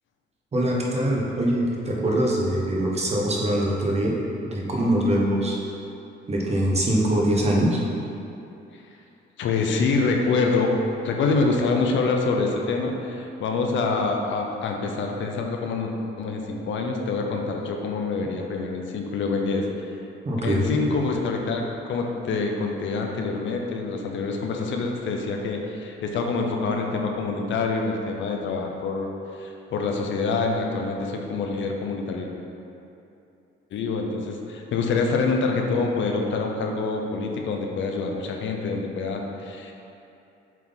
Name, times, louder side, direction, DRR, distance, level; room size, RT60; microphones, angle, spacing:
voice 1, 0.5-4.1 4.4-5.6 6.3-7.8 20.2-20.8, right 1 dB, 30° right, -3 dB, 1.2 m, -23 dB
voice 2, 9.4-10.8 11.0-19.7 20.4-29.1 29.4-32.3 33.7-39.7, left 4 dB, 70° left, 2 dB, 0.7 m, -26 dB
7.4 x 3.7 x 4.0 m, 2.8 s
cardioid pair, 90°, 20 cm